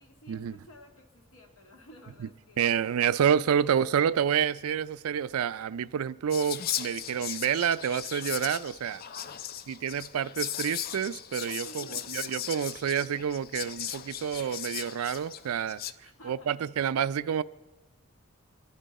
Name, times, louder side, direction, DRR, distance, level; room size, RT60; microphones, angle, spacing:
voice 1, 0.0-2.7 3.4-3.7 8.8-9.4 11.6-12.2 16.0-16.8, equal, 80° left, 2.0 m, -53 dB
voice 2, 2.6-9.0 9.7-15.8 16.2-17.4, right 8 dB, 85° right, 0.4 m, -28 dB
Whispering, 6.3-15.9, left 10 dB, 45° left, 0.4 m, -37 dB
27.5 x 11.5 x 4.1 m
head